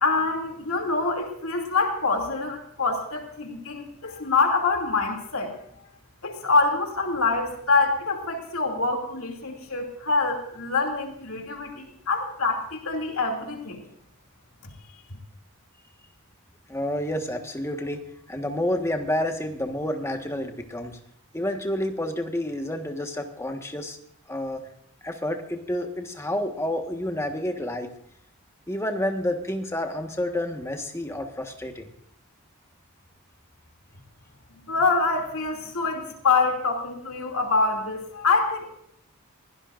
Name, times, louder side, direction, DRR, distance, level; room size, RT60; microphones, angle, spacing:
voice 1, 0.0-5.5 6.2-13.8 34.7-38.7, left 3 dB, 70° left, 3 dB, 2.7 m, -25 dB
voice 2, 16.7-21.0 21.3-24.0 24.3-24.6 25.0-27.9 28.7-31.9, left 1 dB, 10° left, 4 dB, 1.4 m, -29 dB
23.0 x 17.0 x 2.6 m, 0.73 s
head